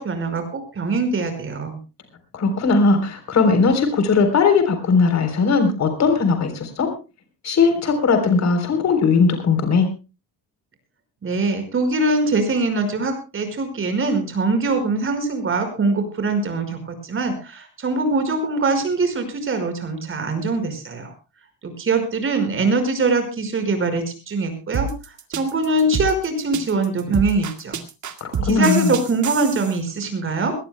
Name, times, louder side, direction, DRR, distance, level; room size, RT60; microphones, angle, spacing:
voice 1, 0.0-1.8 11.2-21.1 21.6-24.9 25.4-27.8 28.4-30.6, right 3 dB, 35° right, 7 dB, 5.2 m, -22 dB
voice 2, 2.3-6.9 7.4-9.9 28.2-28.9, left 4 dB, 45° left, 7 dB, 3.7 m, -18 dB
sound 1, 24.7-29.8, right 5 dB, 55° right, 2.0 m, -28 dB
22.0 x 18.5 x 2.2 m, 0.30 s
cardioid pair, 160°, 36 cm